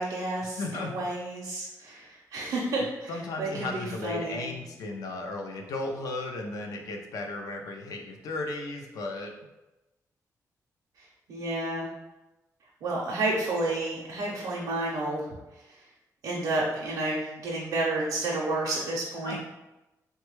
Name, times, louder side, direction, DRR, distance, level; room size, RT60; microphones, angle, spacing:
voice 1, 0.0-3.1 3.4-4.5 11.0-11.9 12.8-15.4 15.7-15.8 16.2-19.4, right 2 dB, 80° right, -4 dB, 0.5 m, -31 dB
voice 2, 0.6-1.1 3.1-9.3 19.2-19.4, left 2 dB, 75° left, 3 dB, 0.4 m, -35 dB
3.3 x 2.2 x 3.1 m, 1.0 s
wide cardioid pair, 180°, 6 cm